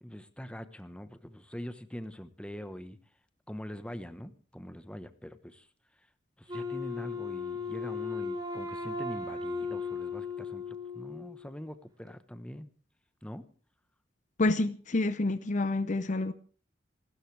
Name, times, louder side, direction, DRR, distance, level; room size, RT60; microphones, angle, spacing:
voice 1, 0.0-3.0 3.5-5.7 6.4-12.7 13.2-13.5, equal, 5° left, 1.1 m, -43 dB
Wind instrument woodwind instrument, 6.5-11.5, left 4 dB, 25° right, 3.7 m, -36 dB
voice 2, 14.4-16.3, left 2 dB, 45° left, 0.7 m, -28 dB
28.0 x 13.0 x 3.4 m
head